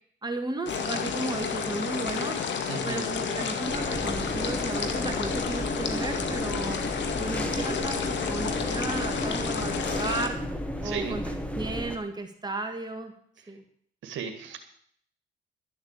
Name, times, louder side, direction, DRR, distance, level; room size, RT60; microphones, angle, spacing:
voice 1, 0.2-2.4 2.8-6.8 7.2-10.5 10.8-13.1 13.5-13.6, right 2 dB, 20° right, 5 dB, 2.0 m, -34 dB
sound 1, 0.7-10.3, left 6 dB, 65° left, 2.0 m, -31 dB
voice 2, 2.7-3.1 10.8-11.2 14.0-14.6, right 7 dB, 80° right, 5 dB, 1.9 m, -35 dB
sound 2, 3.7-12.0, equal, 5° left, 1.8 m, -33 dB
13.0 x 8.0 x 8.3 m, 0.62 s
cardioid pair, 90°, 20 cm